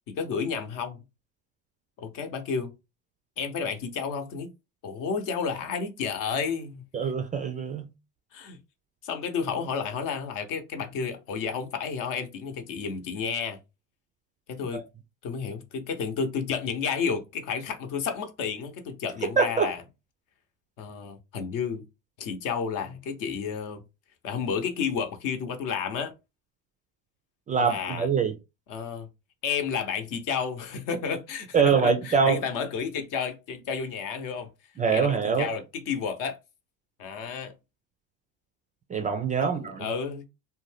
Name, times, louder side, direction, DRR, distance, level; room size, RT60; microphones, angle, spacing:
voice 1, 0.1-1.0 2.0-2.7 3.4-4.5 4.8-6.8 8.3-8.6 9.0-13.6 14.5-14.8 15.2-19.8 20.8-21.8 22.2-23.8 24.2-26.1 27.6-28.1 28.7-29.1 29.4-34.5 34.9-36.4 37.0-37.5 39.4-40.2, left 6 dB, 55° left, 0.8 m, -31 dB
voice 2, 6.9-7.9 14.7-14.8 19.2-19.7 27.5-28.3 31.5-32.4 34.8-35.5 38.9-39.9, right 6 dB, 20° right, 0.3 m, -24 dB
2.5 x 2.2 x 3.2 m
supercardioid pair, 90°, 38 cm